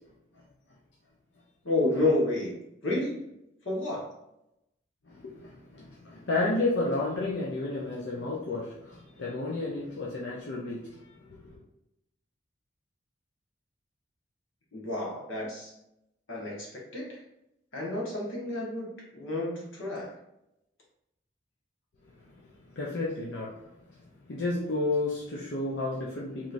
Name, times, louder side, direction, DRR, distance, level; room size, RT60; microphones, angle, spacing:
voice 1, 1.6-3.2 3.6-4.1 14.7-15.7 16.3-17.2 17.7-20.1, left 2 dB, 90° left, -3 dB, 1.3 m, -30 dB
voice 2, 5.0-11.6 22.1-26.5, left 2 dB, 65° left, -4 dB, 0.6 m, -32 dB
3.7 x 3.1 x 2.5 m, 0.85 s
head